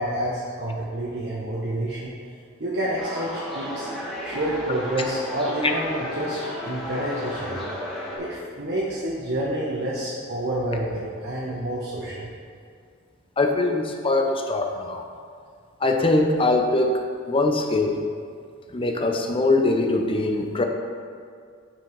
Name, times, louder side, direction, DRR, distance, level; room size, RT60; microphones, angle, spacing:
voice 1, 0.0-2.1 2.6-3.9 4.2-6.4 6.6-7.7 8.2-12.3, right 1 dB, 55° right, -7 dB, 1.2 m, -28 dB
sound 1, 3.0-8.2, left 1 dB, ahead, 1.5 m, -33 dB
voice 2, 13.4-15.0 15.8-16.9 17.3-18.0 18.7-20.6, left 2 dB, 25° left, 4 dB, 0.6 m, -22 dB
7.0 x 6.1 x 4.7 m, 2.2 s
head